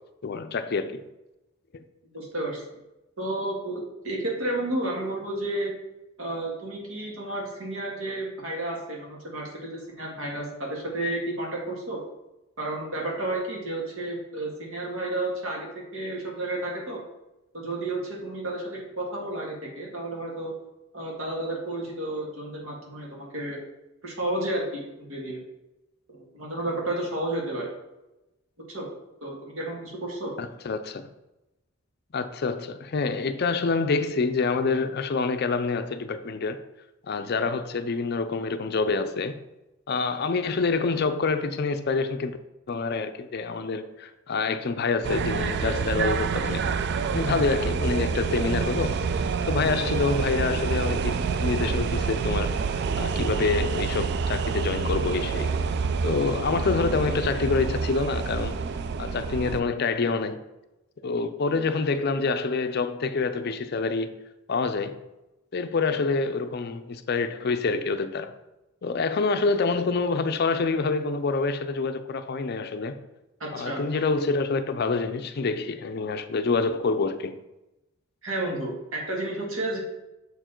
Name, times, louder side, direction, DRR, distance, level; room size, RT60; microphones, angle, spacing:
voice 1, 0.2-1.0 1.7-1.8 30.4-31.1 32.1-36.6 37.1-39.4 39.9-42.4 42.7-46.6 47.1-49.0 49.5-55.6 56.0-58.6 59.0-60.4 61.0-64.1 64.5-65.0 65.5-68.3 68.8-73.0 73.5-77.4, left 4 dB, 50° left, 0.5 m, -27 dB
voice 2, 2.1-2.8 3.2-5.7 6.2-12.0 12.6-17.0 17.5-20.5 20.9-23.6 24.0-25.4 26.1-27.7 28.7-28.9 29.2-30.3 73.4-73.9 78.2-79.8, right 1 dB, 70° right, 2.0 m, -31 dB
sound 1, 45.0-59.6, right 5 dB, 55° right, 0.3 m, -27 dB
6.8 x 4.6 x 4.4 m
head